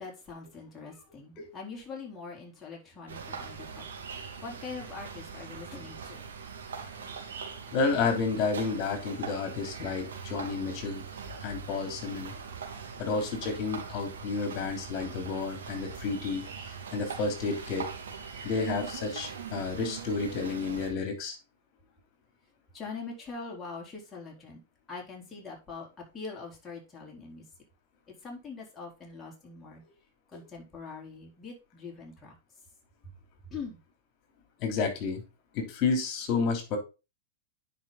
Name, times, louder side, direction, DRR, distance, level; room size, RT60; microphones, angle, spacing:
voice 1, 0.0-3.8 4.1-6.3 22.7-24.6 24.9-27.4 28.2-29.8 30.3-32.4 33.0-33.1 33.5-33.8, left 4 dB, 15° left, -2 dB, 4.1 m, -43 dB
sound 1, 3.1-20.9, right 6 dB, 75° right, 2.5 m, -41 dB
voice 2, 7.7-11.0 11.4-12.3 13.0-17.9 18.4-21.4 34.6-35.2 35.5-36.8, left 4 dB, 45° left, 5 dB, 3.3 m, -31 dB
10.0 x 5.3 x 4.0 m, 0.29 s
hypercardioid pair, 100°, 0 cm